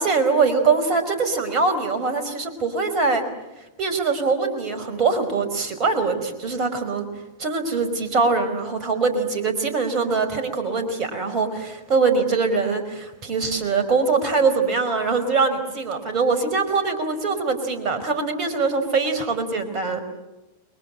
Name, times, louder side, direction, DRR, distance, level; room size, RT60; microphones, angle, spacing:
voice 1, 0.0-3.2 3.8-7.1 7.4-20.0, right 4 dB, 35° right, 8 dB, 5.0 m, -23 dB
29.5 x 22.5 x 7.8 m, 1.0 s
figure-of-eight pair, 90°, 0 cm